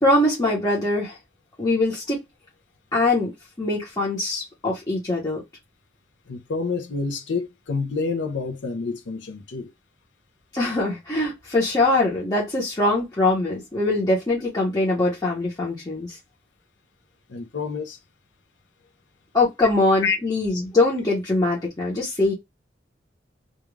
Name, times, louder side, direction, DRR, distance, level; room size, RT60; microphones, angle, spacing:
voice 1, 0.0-1.2 1.6-2.2 2.9-3.3 3.6-5.4 10.5-16.2 19.3-22.3, left 2 dB, 20° left, 0.9 m, -22 dB
voice 2, 6.3-9.7 17.3-18.0 20.0-20.2, left 4 dB, 70° left, 0.6 m, -28 dB
2.4 x 2.4 x 3.1 m
head